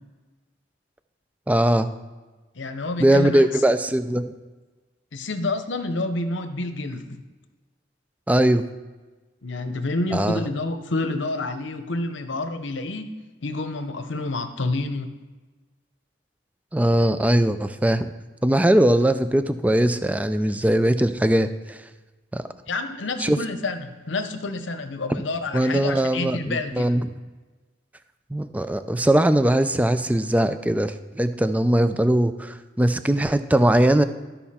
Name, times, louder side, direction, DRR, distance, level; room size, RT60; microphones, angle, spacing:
voice 1, 1.5-1.9 3.0-4.3 8.3-8.7 10.1-10.4 16.7-18.1 18.4-21.8 22.3-22.4 23.2-23.4 25.5-27.1 28.3-34.0, right 1 dB, 10° right, 11 dB, 0.3 m, -20 dB
voice 2, 2.6-3.6 5.1-7.2 9.4-13.1 13.4-15.1 22.7-26.9, left 2 dB, 80° left, 8 dB, 0.8 m, -28 dB
13.0 x 5.5 x 4.3 m, 1.3 s
head